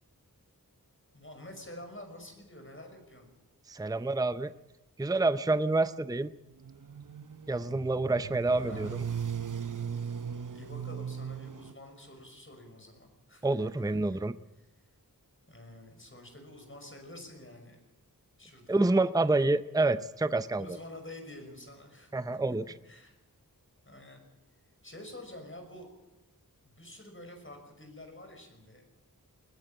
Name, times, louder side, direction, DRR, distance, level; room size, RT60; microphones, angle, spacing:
voice 1, 1.1-3.3 8.4-9.0 9.9-10.0 10.5-14.2 15.5-17.8 18.4-19.0 19.4-19.5 20.6-22.1 22.8-23.2 23.8-24.2 24.8-25.9 26.8-28.9, left 1 dB, 35° left, 4 dB, 5.7 m, -48 dB
voice 2, 3.7-4.5 5.0-6.3 7.5-8.9 13.4-14.4 18.7-20.7 22.1-22.7, right 2 dB, 10° right, 13 dB, 0.6 m, -27 dB
sound 1, 6.6-11.7, right 7 dB, 55° right, 0.9 m, -38 dB
20.5 x 14.5 x 8.8 m, 1.0 s
wide cardioid pair, 45°, 36 cm